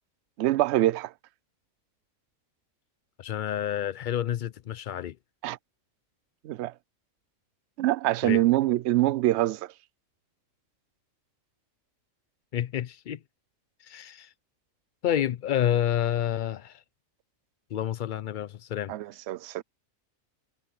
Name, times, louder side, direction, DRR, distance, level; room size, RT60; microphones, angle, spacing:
voice 1, 0.4-1.1 5.4-5.6 6.4-6.7 7.8-9.7 18.9-19.6, right 15 dB, 65° right, 0.8 m, -24 dB
voice 2, 3.2-5.1 8.2-8.4 12.5-13.2 13.8-14.3 15.0-16.8 17.7-18.9, left 10 dB, 80° left, 0.4 m, -29 dB
omnidirectional pair, 1.4 m